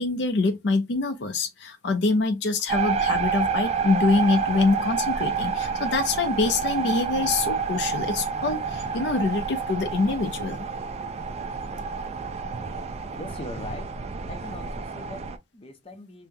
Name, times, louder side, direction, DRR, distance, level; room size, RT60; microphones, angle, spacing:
voice 1, 0.0-10.6, left 3 dB, 75° left, 0.5 m, -25 dB
sound 1, 2.7-15.4, right 5 dB, 35° right, 0.3 m, -29 dB
voice 2, 13.2-16.3, left 1 dB, 30° left, 0.7 m, -41 dB
3.6 x 2.1 x 2.7 m
head